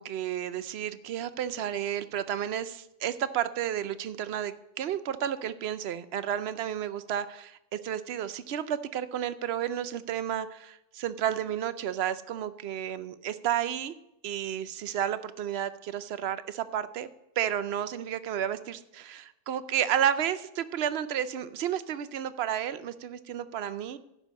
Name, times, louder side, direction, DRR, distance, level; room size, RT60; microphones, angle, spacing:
voice 1, 0.0-13.9 14.2-17.1 17.4-24.0, right 10 dB, 65° right, 14 dB, 0.6 m, -32 dB
11.0 x 5.5 x 7.2 m, 0.87 s
omnidirectional pair, 1.6 m